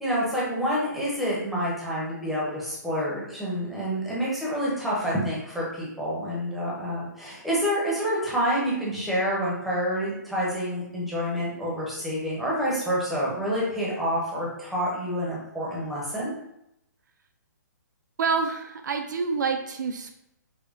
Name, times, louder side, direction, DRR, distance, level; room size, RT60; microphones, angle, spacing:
voice 1, 0.0-16.3, equal, ahead, -7 dB, 0.7 m, -28 dB
voice 2, 18.2-20.1, right 5 dB, 75° right, 6 dB, 0.4 m, -27 dB
5.0 x 2.1 x 2.5 m, 0.80 s
hypercardioid pair, 165°, 10 cm